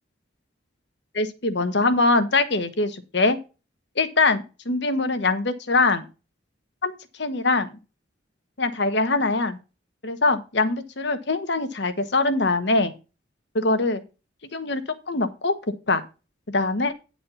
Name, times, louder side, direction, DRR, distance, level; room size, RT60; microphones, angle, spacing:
voice 1, 1.1-3.4 4.0-6.0 6.8-7.7 8.6-9.6 10.0-12.9 13.5-14.0 14.5-15.6 15.9-16.0 16.5-16.9, left 3 dB, 55° left, 10 dB, 1.2 m, -23 dB
10.0 x 4.3 x 5.6 m, 0.30 s
head